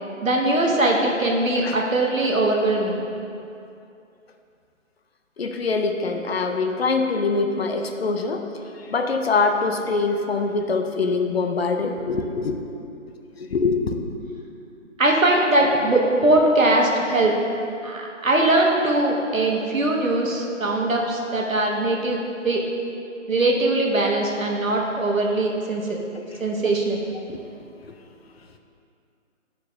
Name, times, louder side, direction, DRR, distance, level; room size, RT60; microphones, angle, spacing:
voice 1, 0.2-3.1 15.0-17.3 17.8-22.2 22.4-22.6 23.3-26.0 26.4-27.0, right 2 dB, 90° right, -1 dB, 1.2 m, -21 dB
voice 2, 5.4-8.4 8.9-12.5 13.4-14.2 26.1-26.2 26.6-26.7 27.3-27.4, left 4 dB, 55° left, 4 dB, 0.5 m, -24 dB
10.5 x 4.5 x 2.7 m, 2.6 s
figure-of-eight pair, 150°, 39 cm